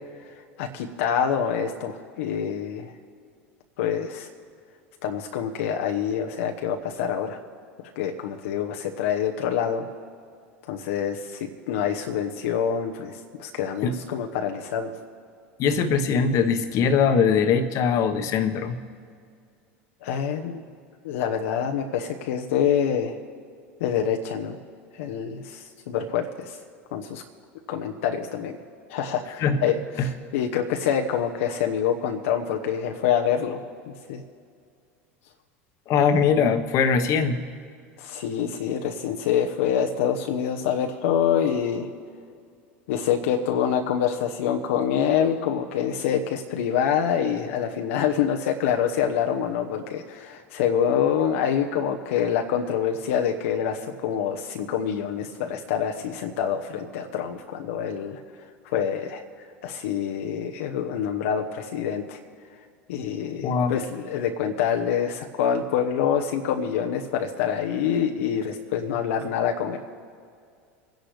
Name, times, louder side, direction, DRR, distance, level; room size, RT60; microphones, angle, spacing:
voice 1, 0.6-2.9 3.8-4.3 5.0-7.4 8.0-9.9 10.7-14.9 20.0-20.6 21.0-23.2 23.8-24.6 24.9-26.6 26.9-27.2 27.7-28.6 28.9-34.2 38.0-41.9 42.9-58.2 58.6-59.2 59.6-62.2 62.9-69.8, left 8 dB, 75° left, 3 dB, 1.0 m, -26 dB
voice 2, 15.6-18.8 29.4-29.6 30.0-30.1 35.9-37.4 63.4-63.8, left 6 dB, 50° left, 8 dB, 1.2 m, -21 dB
25.0 x 10.5 x 3.3 m, 2.2 s
hypercardioid pair, 90°, 7 cm